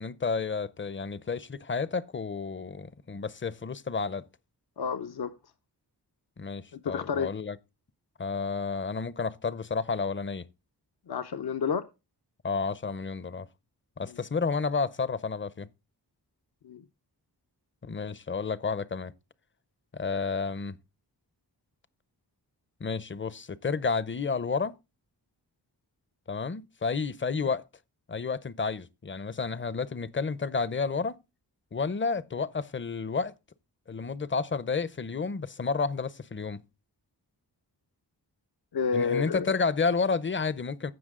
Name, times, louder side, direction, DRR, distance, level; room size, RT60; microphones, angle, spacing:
voice 1, 0.0-4.2 6.4-7.6 8.2-10.5 12.4-13.5 14.0-15.7 17.8-19.1 19.9-20.8 22.8-24.7 26.3-27.6 28.1-31.2 31.7-33.3 33.9-36.6 38.9-40.9, left 4 dB, 30° left, 0.6 m, -31 dB
voice 2, 4.8-5.3 6.7-7.3 11.1-11.8 14.0-14.2 16.6-16.8 38.7-39.6, left 6 dB, 70° left, 0.7 m, -30 dB
15.5 x 5.9 x 3.6 m
wide cardioid pair, 115°, 40 cm